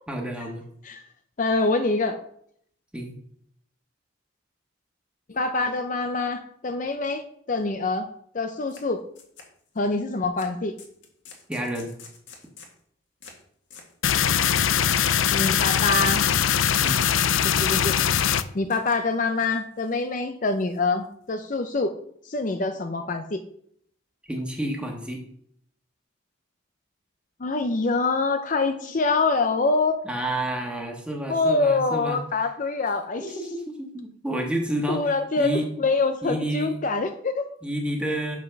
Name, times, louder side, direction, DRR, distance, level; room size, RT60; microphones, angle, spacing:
voice 1, 0.1-0.6 2.9-3.2 11.5-11.9 16.8-17.0 24.3-25.2 30.0-32.2 33.2-35.6 36.2-36.7 37.6-38.4, right 1 dB, 5° right, 0 dB, 1.5 m, -29 dB
voice 2, 1.4-2.2 5.3-9.0 9.8-10.7 15.3-16.3 17.4-18.0 18.5-21.9 22.2-23.4 27.4-30.0 31.3-33.2 34.9-37.5, left 3 dB, 40° left, 7 dB, 0.5 m, -25 dB
sound 1, 8.7-8.8 9.1-9.8 10.4-10.5 10.8-12.8 13.2-13.4 13.7-13.9 14.3-14.5 14.9-15.1 15.4-15.7 16.3-16.5 16.9-17.4 17.8-18.0 18.6-19.0 19.4-20.0 20.4-21.3, left 5 dB, 65° left, 1.8 m, -49 dB
sound 2, 14.0-18.4, left 9 dB, 90° left, 0.5 m, -21 dB
7.3 x 5.7 x 5.9 m, 0.66 s
head